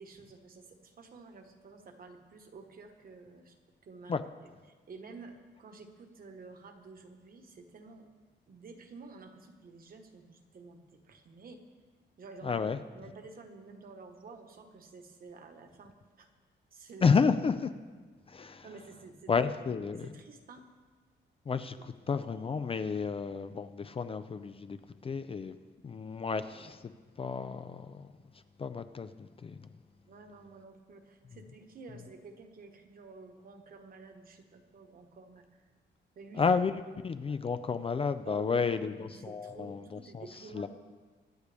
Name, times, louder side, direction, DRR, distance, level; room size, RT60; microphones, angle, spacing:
voice 1, 0.0-3.5 3.8-4.5 4.9-8.1 8.5-11.6 12.2-12.6 12.9-16.3 16.7-17.2 18.6-20.6 30.1-35.6 36.1-36.4 37.3-37.4 38.2-40.7, right 4 dB, 50° right, 5 dB, 1.3 m, -51 dB
voice 2, 12.4-12.8 17.0-17.7 18.3-18.7 19.3-20.1 21.5-24.8 25.0-25.6 25.8-26.9 27.2-28.1 28.6-29.6 36.3-40.2 40.5-40.7, left 5 dB, 30° left, 11 dB, 0.4 m, -31 dB
23.5 x 9.7 x 3.5 m, 1.4 s
wide cardioid pair, 160°, 19 cm